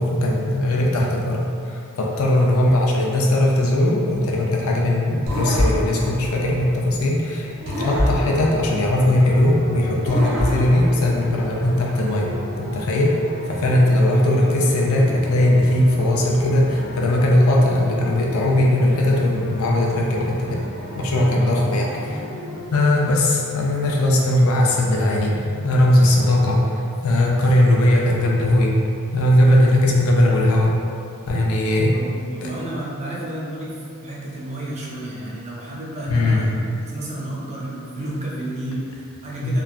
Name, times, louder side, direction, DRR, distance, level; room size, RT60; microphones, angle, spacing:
voice 1, 0.0-13.2 13.5-20.6 21.0-22.2 22.7-28.8 29.1-30.7 31.3-31.9 32.4-32.5 36.1-36.4 39.4-39.6, left 1 dB, 65° left, -2 dB, 0.4 m, -19 dB
sound 1, 5.3-7.2 7.7-9.5 10.1-11.8, equal, 65° right, 0.8 m, -26 dB
sound 2, 7.6-22.6, left 1 dB, 45° left, 1.0 m, -35 dB
sound 3, 21.0-22.9 24.7-26.7, equal, 80° right, 0.4 m, -39 dB
voice 2, 31.9-36.5 36.8-39.6, right 1 dB, 30° right, -6 dB, 0.5 m, -31 dB
3.0 x 2.3 x 2.4 m, 2.4 s
head